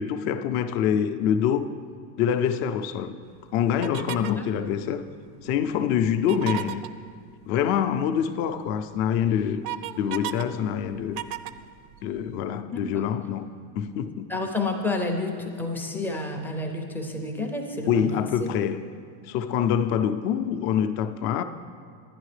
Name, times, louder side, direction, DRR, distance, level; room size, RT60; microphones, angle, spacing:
voice 1, 0.0-1.7 2.2-3.2 3.5-5.0 5.4-6.8 7.5-9.6 10.0-11.2 12.0-13.5 13.7-14.2 17.9-18.8 19.3-21.4, left 8 dB, 55° left, 9 dB, 0.6 m, -25 dB
sound 1, 3.8-4.4 6.2-6.9 8.5-8.6 9.0-10.4 10.8-12.4, right 14 dB, 70° right, 0.5 m, -34 dB
voice 2, 14.3-18.5, left 3 dB, 5° left, 1 dB, 0.3 m, -30 dB
10.5 x 10.5 x 3.3 m, 2.3 s
supercardioid pair, 125°, 50 cm